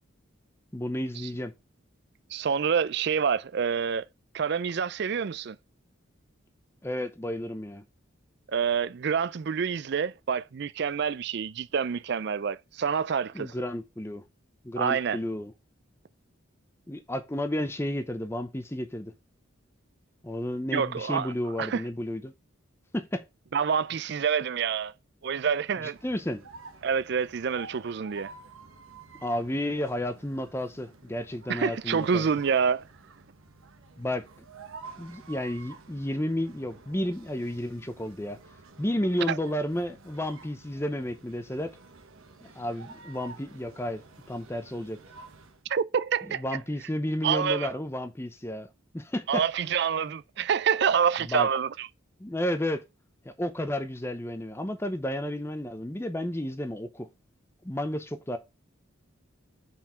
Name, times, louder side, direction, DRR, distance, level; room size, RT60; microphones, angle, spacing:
voice 1, 0.7-1.5 6.8-7.8 13.3-14.2 14.6-15.5 16.9-19.1 20.2-22.3 22.9-23.2 26.0-26.4 29.2-32.3 34.0-34.2 35.0-38.4 38.8-41.7 42.4-45.0 46.3-48.7 48.9-49.7 51.3-51.5 52.2-52.8 53.2-57.1 57.6-58.4, left 1 dB, 10° left, 0.6 m, -32 dB
voice 2, 2.3-4.0 4.3-5.6 8.5-13.5 14.8-15.2 20.7-21.3 21.6-21.8 23.5-24.9 25.2-26.0 26.8-28.3 31.5-32.9 39.3-39.4 45.7-46.4 47.2-47.7 49.3-51.9, right 6 dB, 55° right, 0.4 m, -27 dB
sound 1, 26.0-45.6, right 3 dB, 85° right, 1.1 m, -50 dB
5.8 x 4.6 x 4.5 m
head